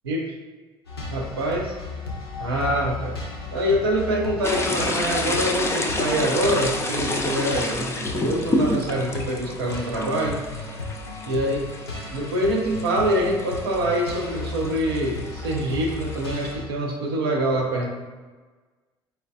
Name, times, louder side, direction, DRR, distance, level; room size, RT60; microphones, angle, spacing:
sound 1, 0.9-16.7, left 3 dB, 85° left, 0.4 m, -35 dB
voice 1, 1.1-1.7 2.4-3.2 3.5-10.4 11.2-11.6 12.1-17.9, right 1 dB, 80° right, -1 dB, 0.5 m, -25 dB
sound 2, 4.4-16.5, left 2 dB, 20° left, 0.4 m, -29 dB
4.2 x 2.3 x 2.3 m, 1.4 s
figure-of-eight pair, 50°, 13 cm